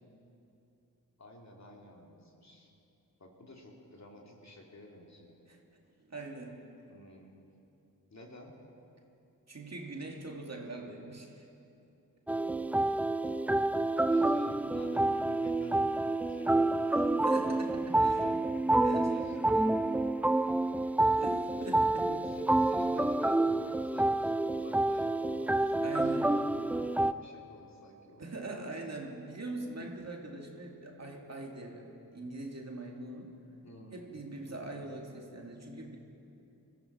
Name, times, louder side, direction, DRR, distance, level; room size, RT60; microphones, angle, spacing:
voice 1, 1.2-2.7 3.2-5.4 6.9-7.4 8.1-8.6 12.4-13.0 14.1-17.1 17.9-18.4 18.7-19.7 21.0-21.3 21.6-28.2 29.8-29.9 33.6-34.1 34.5-34.9, left 1 dB, 45° left, -1 dB, 2.7 m, -50 dB
voice 2, 6.1-6.7 9.5-11.5 17.3-18.3 18.8-19.5 21.2-22.2 25.8-26.4 28.2-33.4 33.9-36.0, right 2 dB, 45° right, 1 dB, 2.1 m, -42 dB
sound 1, 12.3-27.1, right 2 dB, 5° right, 0.3 m, -28 dB
20.5 x 13.5 x 4.3 m, 2.8 s
cardioid pair, 40°, 37 cm